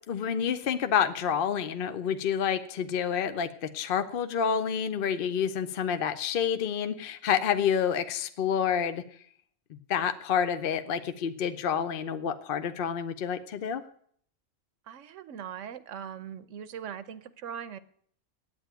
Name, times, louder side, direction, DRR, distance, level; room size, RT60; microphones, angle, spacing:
voice 1, 0.1-9.0 9.7-13.8, left 8 dB, 55° left, 10 dB, 0.7 m, -28 dB
voice 2, 14.9-17.8, right 8 dB, 70° right, 15 dB, 1.1 m, -40 dB
9.0 x 8.9 x 9.1 m, 0.62 s
omnidirectional pair, 1.3 m